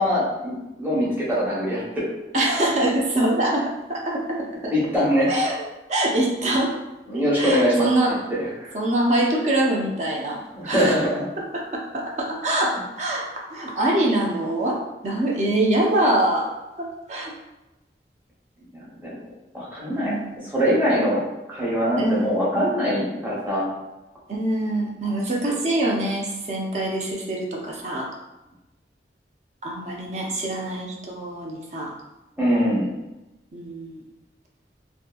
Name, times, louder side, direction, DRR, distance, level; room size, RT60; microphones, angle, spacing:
voice 1, 0.0-2.0 4.7-5.3 7.1-7.9 8.6-8.7 10.5-11.2 18.7-19.1 19.5-20.1 20.5-21.2 21.5-23.7 32.4-32.9, equal, 10° right, -8 dB, 0.8 m, -22 dB
voice 2, 2.3-3.6 3.9-4.4 4.6-4.7 5.3-5.6 5.9-6.7 7.1-8.2 8.7-10.4 10.7-11.0 11.5-16.5 16.8-17.3 19.9-20.4 22.0-22.3 24.3-28.1 29.6-31.9 33.5-34.0, right 1 dB, 40° right, -1 dB, 0.5 m, -24 dB
2.6 x 2.5 x 2.3 m, 0.99 s
head